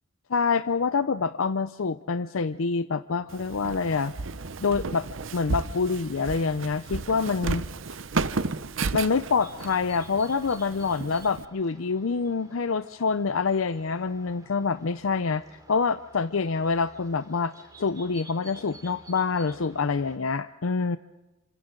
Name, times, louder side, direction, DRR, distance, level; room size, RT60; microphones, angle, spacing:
voice 1, 0.3-4.1 4.6-5.1 5.3-7.6 8.9-17.5 17.8-21.0, left 4 dB, 80° left, 12 dB, 0.6 m, -26 dB
Walk footsteps, 3.3-11.4, right 3 dB, 65° right, 0.8 m, -33 dB
sound 1, 9.4-20.2, right 1 dB, 15° right, 2.6 m, -52 dB
27.5 x 26.0 x 3.8 m, 1.1 s
head